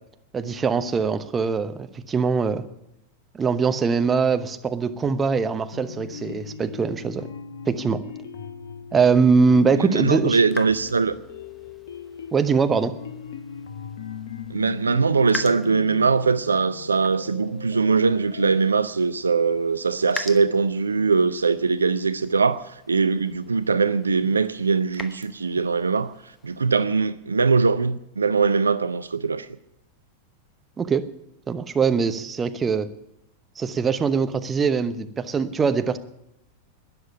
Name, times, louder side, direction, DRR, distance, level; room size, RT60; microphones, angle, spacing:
voice 1, 0.3-2.6 3.3-7.3 7.7-8.0 8.9-10.4 12.3-13.0 30.8-31.1 31.5-32.9 33.6-36.0, right 5 dB, 20° right, 0.9 m, -22 dB
sound 1, 5.7-18.8, left 6 dB, 60° left, 1.0 m, -39 dB
sound 2, 9.0-26.9, left 3 dB, 15° left, 1.0 m, -44 dB
voice 2, 9.8-11.1 14.5-26.1 26.4-29.5, right 4 dB, 75° right, 0.5 m, -21 dB
12.5 x 10.5 x 10.0 m
figure-of-eight pair, 90°, 0 cm